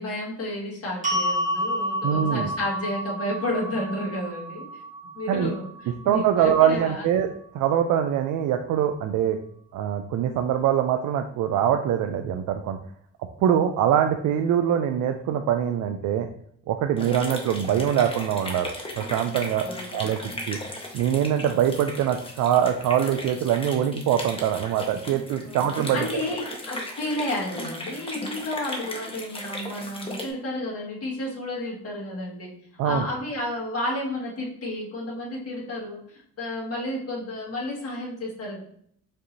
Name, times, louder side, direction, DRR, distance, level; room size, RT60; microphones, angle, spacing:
voice 1, 0.0-4.7 5.1-5.7 6.0-7.1 19.6-20.0 25.4-38.6, left 1 dB, 50° left, -4 dB, 1.7 m, -31 dB
sound 1, 1.0-7.2, equal, 25° right, 1.2 m, -31 dB
voice 2, 2.0-2.5 5.3-5.5 6.1-7.3 7.5-9.4 9.7-12.8 13.4-16.3 16.7-20.2 20.5-20.6 20.9-26.2 32.8-33.1, right 9 dB, 80° right, 6 dB, 0.5 m, -23 dB
sound 2, 17.0-30.3, left 1 dB, 20° left, 1.0 m, -37 dB
5.3 x 2.8 x 2.7 m, 0.65 s
cardioid pair, 90°, 30 cm